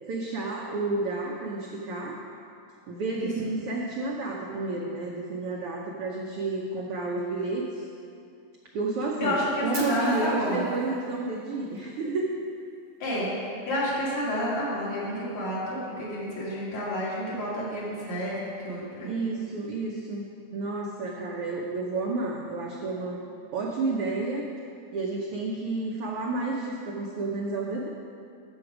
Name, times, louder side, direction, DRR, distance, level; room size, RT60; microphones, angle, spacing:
voice 1, 0.1-2.2 2.9-7.8 8.7-9.4 9.6-12.3 19.1-20.3 20.5-23.2 23.5-24.5 24.9-27.9, right 3 dB, 75° right, -1 dB, 1.3 m, -31 dB
voice 2, 9.2-10.7 13.0-19.2, equal, 65° left, -7 dB, 3.5 m, -30 dB
Fire, 9.7-11.8, right 2 dB, 45° right, 0.7 m, -42 dB
11.0 x 7.2 x 4.9 m, 2.6 s
omnidirectional pair, 3.4 m